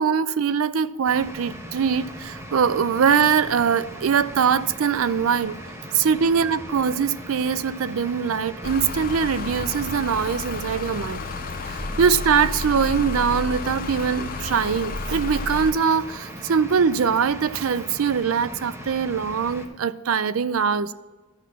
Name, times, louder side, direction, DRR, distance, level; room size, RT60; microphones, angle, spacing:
voice 1, 0.0-5.6 5.9-11.2 11.7-20.9, right 6 dB, 85° right, 0.5 m, -22 dB
sound 1, 1.0-19.7, equal, 15° right, 1.1 m, -39 dB
sound 2, 8.6-15.7, left 3 dB, 45° left, 0.6 m, -31 dB
12.0 x 6.2 x 5.9 m
head